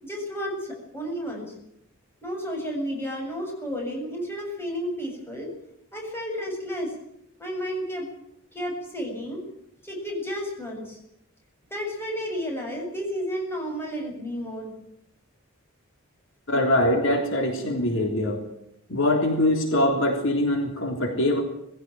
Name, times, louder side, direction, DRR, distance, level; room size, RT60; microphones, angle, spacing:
voice 1, 0.0-1.5 2.2-5.5 5.9-6.9 7.4-8.1 8.5-9.4 9.8-11.0 11.7-14.7, equal, 10° left, -1 dB, 7.3 m, -32 dB
voice 2, 16.5-18.4 18.9-21.4, left 1 dB, 65° left, 3 dB, 3.6 m, -23 dB
21.0 x 16.0 x 9.2 m, 0.74 s
head